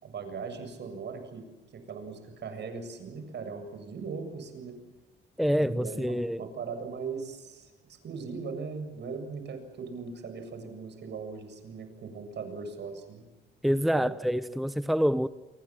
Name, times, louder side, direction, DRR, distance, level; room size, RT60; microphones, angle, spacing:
voice 1, 0.0-1.5 1.7-4.8 5.6-13.2 13.9-14.1, right 5 dB, 60° right, 7.5 m, -39 dB
voice 2, 5.4-6.4 13.6-15.3, equal, ahead, 0.9 m, -26 dB
28.0 x 24.5 x 7.6 m
cardioid pair, 90°, 20 cm